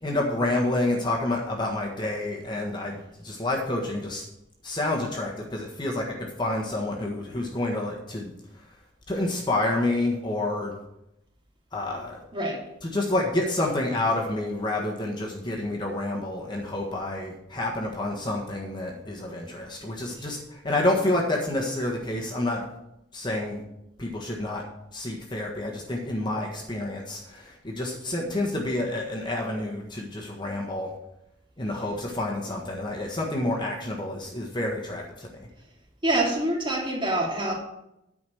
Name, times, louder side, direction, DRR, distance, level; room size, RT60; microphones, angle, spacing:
voice 1, 0.0-4.2 4.6-6.1 6.4-8.3 9.1-10.8 11.7-12.2 12.8-22.7 23.1-23.6 24.0-24.6 24.9-30.9 31.6-35.4, left 1 dB, 25° left, -1 dB, 1.4 m, -28 dB
voice 2, 12.3-12.6 20.2-20.3 36.0-37.5, right 1 dB, 25° right, -2 dB, 2.6 m, -26 dB
9.5 x 5.2 x 7.7 m, 0.84 s
head